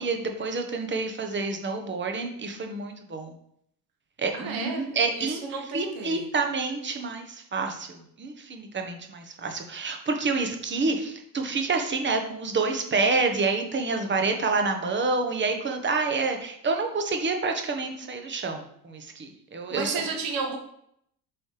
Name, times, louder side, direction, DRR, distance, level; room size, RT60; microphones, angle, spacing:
voice 1, 0.0-3.3 4.2-5.4 5.7-20.1, right 3 dB, 20° right, 4 dB, 1.3 m, -28 dB
voice 2, 4.3-4.9 5.2-6.2 14.4-14.5 19.7-20.6, right 4 dB, 45° right, 1 dB, 1.8 m, -32 dB
7.6 x 5.4 x 3.3 m, 0.71 s
figure-of-eight pair, 65°, 50 cm